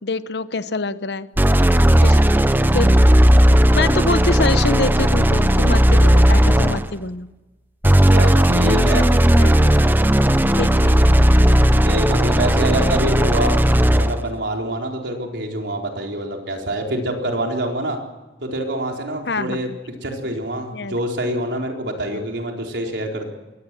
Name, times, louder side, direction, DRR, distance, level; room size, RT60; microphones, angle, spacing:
voice 1, 0.0-1.3 2.0-2.2 2.7-3.0 3.5-7.3 8.6-9.0 9.4-9.8 10.6-11.1 19.3-19.8 20.7-21.0, left 3 dB, 70° left, 13 dB, 0.9 m, -25 dB
sound 1, 1.4-7.0 7.8-14.2, equal, 10° right, 0.7 m, -15 dB
voice 2, 8.0-9.1 11.8-18.0 18.4-19.7 20.0-23.3, right 1 dB, 80° right, 1 dB, 4.2 m, -26 dB
23.0 x 18.0 x 7.6 m, 1.2 s
head